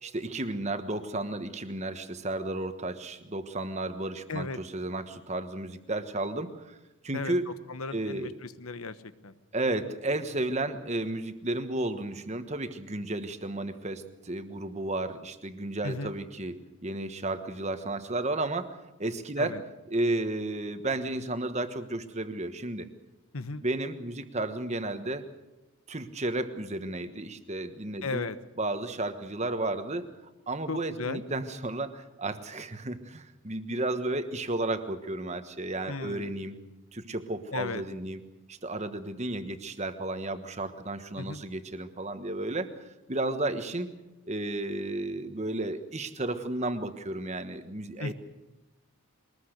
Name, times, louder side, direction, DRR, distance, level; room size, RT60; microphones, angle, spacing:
voice 1, 0.0-6.8 7.0-7.5 7.9-8.3 9.5-19.6 19.9-22.9 23.6-25.3 25.9-28.2 28.6-30.1 30.5-36.6 36.9-38.2 38.5-42.7 43.1-43.9 44.3-48.1, right 2 dB, 30° right, 9 dB, 1.3 m, -33 dB
voice 2, 7.7-9.0 9.2-9.3 15.8-16.1 19.4-19.6 23.3-23.6 28.0-28.4 30.7-31.2 35.9-36.3 37.5-37.8 41.2-41.4 48.0-48.1, left 3 dB, 80° left, 12 dB, 1.2 m, -35 dB
22.5 x 20.0 x 6.6 m, 1.0 s
head